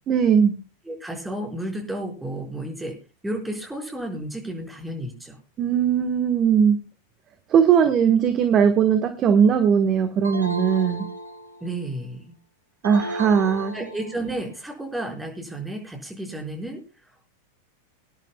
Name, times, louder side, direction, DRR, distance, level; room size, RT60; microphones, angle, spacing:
voice 1, 0.1-0.5 5.6-6.8 7.5-11.1 12.8-13.7, right 7 dB, 30° right, 8 dB, 1.3 m, -19 dB
voice 2, 0.8-2.9 3.2-5.4 11.6-12.2 13.7-16.8, right 1 dB, 5° right, 0 dB, 4.7 m, -32 dB
sound 1, 10.2-11.8 12.8-14.4, right 1 dB, 85° right, 1.3 m, -34 dB
24.5 x 10.5 x 2.3 m, 0.32 s
figure-of-eight pair, 90°, 0 cm